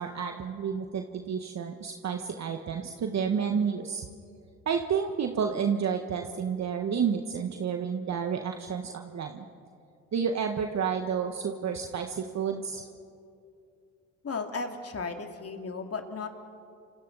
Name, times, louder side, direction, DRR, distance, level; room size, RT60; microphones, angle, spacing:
voice 1, 0.0-4.0 4.6-9.4 10.1-12.8, right 7 dB, 45° right, 5 dB, 1.5 m, -30 dB
voice 2, 14.2-16.3, left 4 dB, 40° left, 4 dB, 2.7 m, -35 dB
30.0 x 26.5 x 4.1 m, 2.5 s
hypercardioid pair, 55°, 36 cm